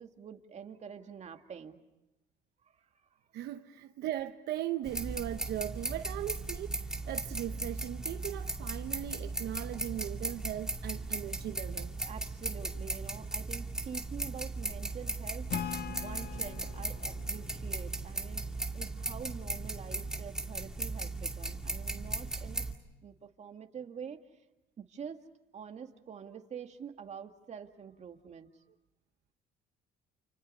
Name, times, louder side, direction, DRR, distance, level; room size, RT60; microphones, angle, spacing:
voice 1, 0.0-1.8 2.6-2.9 12.0-15.5 15.9-22.7 23.0-24.4 24.8-25.2 25.5-28.6, right 7 dB, 40° right, 2.1 m, -46 dB
voice 2, 3.3-12.1, right 13 dB, 75° right, 0.9 m, -38 dB
sound 1, 4.8-22.7, right 2 dB, 5° right, 2.3 m, -37 dB
Acoustic guitar / Strum, 15.5-18.9, left 8 dB, 75° left, 1.5 m, -43 dB
29.5 x 29.5 x 5.5 m
cardioid pair, 110°, 17 cm